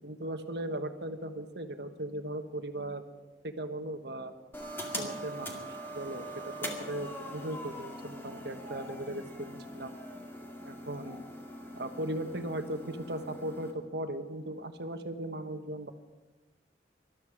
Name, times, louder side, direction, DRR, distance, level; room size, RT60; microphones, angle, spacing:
voice 1, 0.0-3.1 3.4-4.3 5.0-5.7 5.9-10.0 10.6-11.3 11.8-15.9, right 1 dB, 65° right, 7 dB, 1.3 m, -38 dB
sound 1, 4.5-13.7, equal, 15° left, 2.2 m, -42 dB
20.0 x 13.0 x 4.9 m, 1.2 s
head